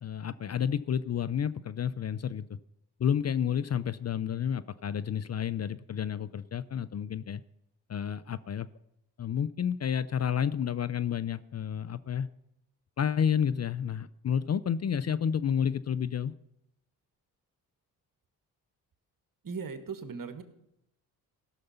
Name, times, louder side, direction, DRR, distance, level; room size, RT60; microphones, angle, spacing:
voice 1, 0.0-2.6 3.0-7.4 7.9-8.7 9.2-12.3 13.0-16.3, left 8 dB, 35° left, 15 dB, 0.5 m, -30 dB
voice 2, 19.4-20.4, right 5 dB, 50° right, 9 dB, 1.6 m, -38 dB
16.5 x 6.6 x 5.6 m, 0.82 s
supercardioid pair, 45°, 43 cm